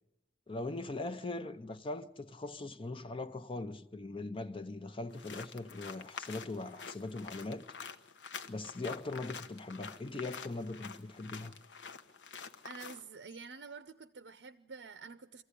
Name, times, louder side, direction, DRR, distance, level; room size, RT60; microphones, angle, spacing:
voice 1, 0.5-7.7 8.5-11.5, left 2 dB, 30° left, 0.7 m, -40 dB
sound 1, 5.1-13.0, left 6 dB, 80° left, 1.1 m, -47 dB
voice 2, 12.6-15.4, right 5 dB, 80° right, 0.7 m, -48 dB
24.5 x 15.0 x 9.9 m
head